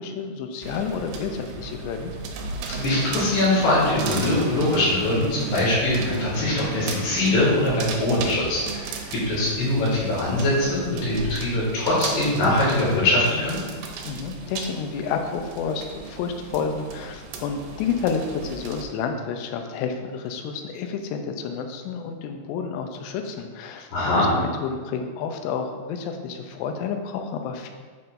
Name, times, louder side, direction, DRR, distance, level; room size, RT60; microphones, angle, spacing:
voice 1, 0.0-2.1 14.0-23.9 24.2-27.7, left 6 dB, 85° left, 5 dB, 2.8 m, -30 dB
sound 1, 0.6-18.9, right 5 dB, 80° right, 2.7 m, -35 dB
voice 2, 2.8-13.6 23.9-24.3, left 1 dB, 65° left, -7 dB, 4.0 m, -22 dB
7.9 x 5.6 x 2.5 m, 1.5 s
omnidirectional pair, 5.1 m